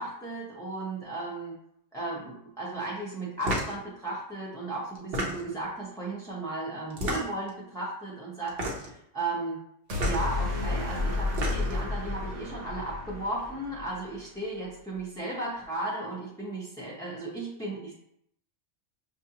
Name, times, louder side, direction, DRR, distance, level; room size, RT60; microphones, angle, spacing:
voice 1, 0.0-1.6 1.9-9.6 10.0-17.9, right 2 dB, 5° left, -6 dB, 0.4 m, -35 dB
sound 1, 3.4-3.8 4.9-5.6 6.9-7.5 8.5-9.0 9.9-10.2 11.1-11.8, right 1 dB, 55° right, 1.0 m, -31 dB
sound 2, 9.9-14.2, left 2 dB, 75° right, 1.3 m, -32 dB
5.9 x 2.4 x 2.8 m, 0.73 s
omnidirectional pair, 1.2 m